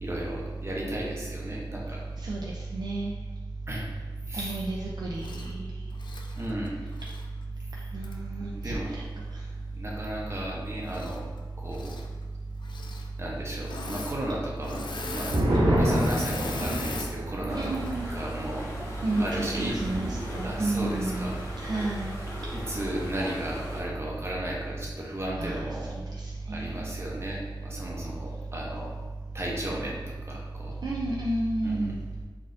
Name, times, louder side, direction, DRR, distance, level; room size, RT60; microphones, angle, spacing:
voice 1, 0.0-2.0 3.7-3.9 4.3-4.5 6.4-6.8 8.5-8.9 9.7-11.3 11.6-12.0 13.2-14.8 15.1-15.3 15.7-17.7 18.1-18.7 19.2-19.8 20.4-21.4 22.5-25.9 26.5-29.0 29.3-30.7 31.6-32.0, right 1 dB, 35° right, -3 dB, 0.8 m, -34 dB
voice 2, 2.2-3.1 4.3-5.7 7.9-9.0 17.5-18.2 19.0-22.2 25.4-25.7 26.2-26.9 30.8-32.0, right 2 dB, 55° right, -3 dB, 0.4 m, -31 dB
Engine / Mechanisms, 5.2-5.5 5.9-7.3 8.0-8.1 10.8-11.4 11.7-12.1 12.6-13.1 13.6-14.2 14.4-17.1 17.6-17.9, left 3 dB, 70° left, 0.3 m, -39 dB
sound 1, 14.7-21.7 21.9-22.0 22.4-22.9, equal, 85° right, 0.8 m, -30 dB
sound 2, 17.5-23.8, left 1 dB, 35° left, 1.4 m, -40 dB
4.0 x 2.6 x 2.5 m, 1.3 s
wide cardioid pair, 80°, 8 cm